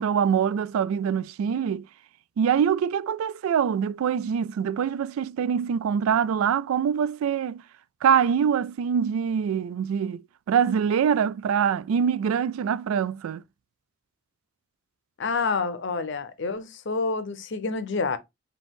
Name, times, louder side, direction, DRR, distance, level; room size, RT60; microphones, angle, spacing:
voice 1, 0.0-1.9 2.4-7.6 8.0-13.4, right 7 dB, 90° right, 0.3 m, -24 dB
voice 2, 15.2-18.2, left 4 dB, 60° left, 0.6 m, -28 dB
5.2 x 2.7 x 3.6 m
head